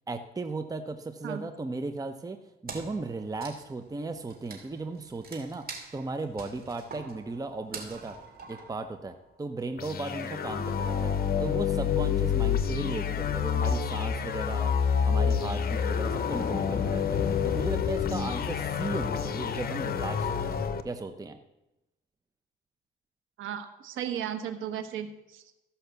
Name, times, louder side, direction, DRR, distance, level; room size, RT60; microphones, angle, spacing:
voice 1, 0.1-2.4 2.6-5.7 5.9-8.2 8.5-11.1 11.4-14.7 15.0-17.2 17.4-21.4, right 3 dB, 20° right, 8 dB, 0.7 m, -36 dB
Wood, 2.7-9.4, right 4 dB, 50° right, 2.4 m, -45 dB
sound 1, 9.8-20.8, left 7 dB, 50° left, 0.9 m, -28 dB
voice 2, 23.4-25.4, right 9 dB, 85° right, 9 dB, 1.2 m, -35 dB
14.0 x 5.7 x 6.8 m, 0.94 s
cardioid pair, 90°, 20 cm